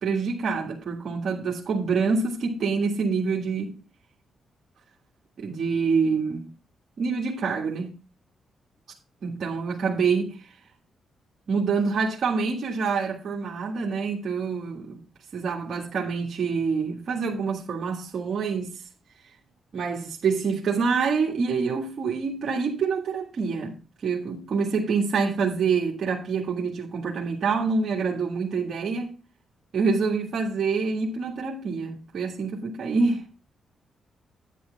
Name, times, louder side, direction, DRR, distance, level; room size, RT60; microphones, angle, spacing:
voice 1, 0.0-3.8 5.4-6.5 7.0-7.9 9.2-10.6 11.5-15.0 15.3-18.8 19.7-29.1 29.7-33.4, right 5 dB, 60° right, 1.8 m, -26 dB
9.5 x 9.4 x 3.5 m
supercardioid pair, 60°, 0 cm